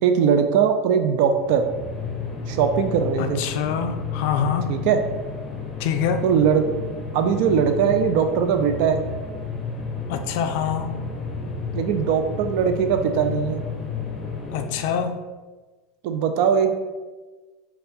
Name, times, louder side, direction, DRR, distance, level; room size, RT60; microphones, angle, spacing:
voice 1, 0.0-1.7 2.5-3.4 4.7-5.0 6.2-6.7 7.1-9.0 11.7-13.6 16.0-16.7, right 7 dB, 65° right, 7 dB, 0.3 m, -20 dB
sound 1, 1.3-15.2, left 5 dB, 25° left, 0.6 m, -32 dB
voice 2, 3.2-4.7 5.8-6.2 10.1-10.9 14.5-15.2, left 7 dB, 65° left, 7 dB, 0.3 m, -25 dB
4.1 x 2.2 x 2.6 m, 1.3 s
hypercardioid pair, 95°, 0 cm